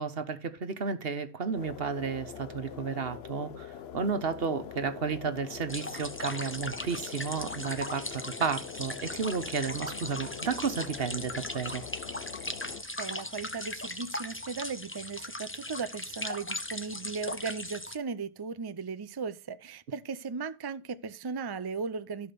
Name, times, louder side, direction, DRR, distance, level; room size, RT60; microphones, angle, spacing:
voice 1, 0.0-3.7 3.9-11.8, right 5 dB, 65° right, 1.3 m, -32 dB
sound 1, 1.5-12.8, left 9 dB, 75° left, 1.0 m, -44 dB
sound 2, 5.7-18.0, left 1 dB, 10° left, 0.9 m, -38 dB
voice 2, 13.0-22.3, right 5 dB, 30° right, 0.6 m, -37 dB
13.5 x 5.0 x 6.9 m
omnidirectional pair, 1.1 m